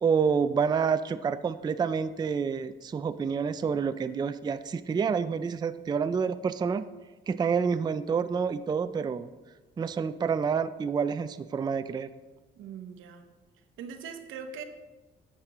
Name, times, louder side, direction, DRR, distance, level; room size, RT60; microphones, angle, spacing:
voice 1, 0.0-6.8 7.3-9.3 9.8-12.1, right 6 dB, 20° right, 11 dB, 0.3 m, -28 dB
voice 2, 12.6-13.3 13.8-14.6, right 6 dB, 85° right, 7 dB, 0.9 m, -41 dB
10.5 x 7.5 x 3.0 m, 1.2 s
cardioid pair, 90°, 20 cm